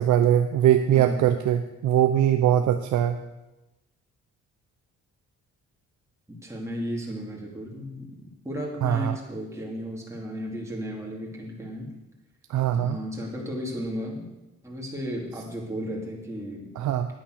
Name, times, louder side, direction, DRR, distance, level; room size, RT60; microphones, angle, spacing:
voice 1, 0.0-3.2 8.8-9.2 12.5-13.0 16.8-17.1, right 10 dB, 75° right, 7 dB, 0.7 m, -21 dB
voice 2, 0.9-1.2 6.3-11.9 12.7-14.3 14.6-16.7, equal, 10° right, -2 dB, 2.7 m, -34 dB
9.1 x 8.8 x 6.5 m, 1.0 s
cardioid pair, 90°, 30 cm